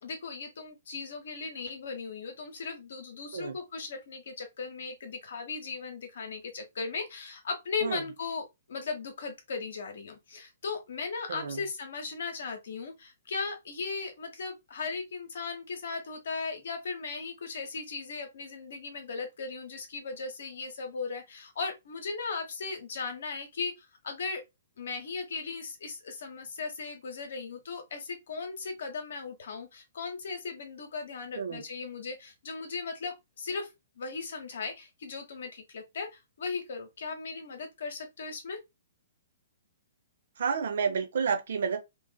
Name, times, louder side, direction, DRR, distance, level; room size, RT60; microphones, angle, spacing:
voice 1, 0.0-24.4 24.8-33.7 34.0-38.6, left 4 dB, 65° left, 0.9 m, -37 dB
voice 2, 11.3-11.6 31.4-31.6 40.4-41.8, right 6 dB, 65° right, 0.5 m, -30 dB
2.5 x 2.4 x 2.3 m
hypercardioid pair, 125°, 0 cm